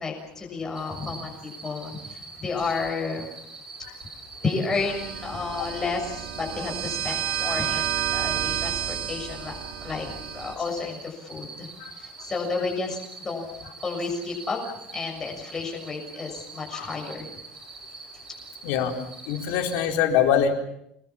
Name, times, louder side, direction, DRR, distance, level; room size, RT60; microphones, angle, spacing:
voice 1, 0.0-3.3 4.4-9.5 9.8-10.1 10.3-11.7 12.0-13.5 13.8-14.6 14.9-17.3, left 4 dB, 15° left, 1 dB, 6.8 m, -31 dB
sound 1, 0.7-19.9, right 3 dB, 15° right, 5.6 m, -44 dB
sound 2, 4.7-10.5, right 11 dB, 70° right, 2.9 m, -30 dB
voice 2, 18.6-20.5, left 8 dB, 75° left, 3 dB, 4.4 m, -24 dB
28.0 x 21.0 x 7.3 m, 0.76 s
cardioid pair, 170°, 3 cm